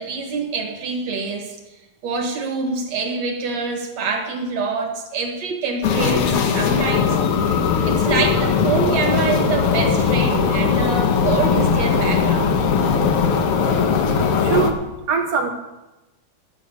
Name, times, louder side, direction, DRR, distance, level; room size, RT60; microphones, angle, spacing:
voice 1, 0.0-1.6 2.0-7.2 7.9-12.6, right 4 dB, 55° right, 3 dB, 2.4 m, -25 dB
sound 1, 5.8-14.7, left 6 dB, 70° left, 1.4 m, -19 dB
voice 2, 14.4-14.8 15.1-15.5, right 5 dB, 75° right, 3 dB, 1.4 m, -21 dB
12.5 x 6.3 x 8.3 m, 1.0 s
omnidirectional pair, 3.9 m